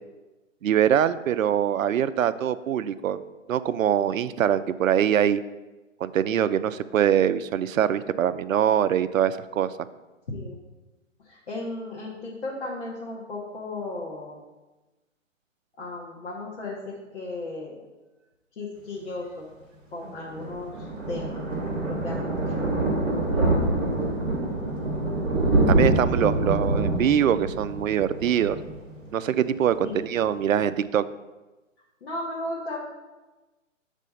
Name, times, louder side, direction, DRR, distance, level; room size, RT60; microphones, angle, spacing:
voice 1, 0.6-3.2 3.5-5.4 6.0-9.7 23.3-23.6 25.2-25.3 25.7-28.6 29.1-31.0, right 9 dB, 90° right, 14 dB, 0.5 m, -23 dB
voice 2, 10.3-10.6 11.2-14.4 15.8-17.8 18.6-19.5 19.9-21.4 21.8-22.7 29.8-30.0 32.0-32.8, left 2 dB, 55° left, -5 dB, 1.3 m, -35 dB
Thunder, 20.0-29.4 29.7-30.0 30.3-30.4 30.6-30.7, right 2 dB, 5° right, 0.6 m, -25 dB
6.3 x 3.3 x 5.4 m, 1.1 s
hypercardioid pair, 165°, 39 cm